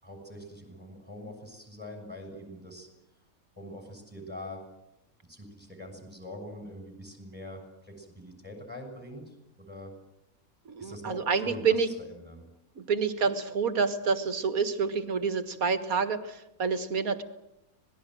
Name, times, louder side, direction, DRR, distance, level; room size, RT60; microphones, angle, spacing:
voice 1, 0.0-2.9 3.6-4.6 5.2-9.9 10.8-12.5, left 1 dB, 5° right, 4 dB, 6.6 m, -44 dB
voice 2, 10.7-11.9 12.8-17.2, right 5 dB, 80° right, 10 dB, 2.1 m, -28 dB
26.0 x 19.5 x 7.8 m, 0.89 s
omnidirectional pair, 1.5 m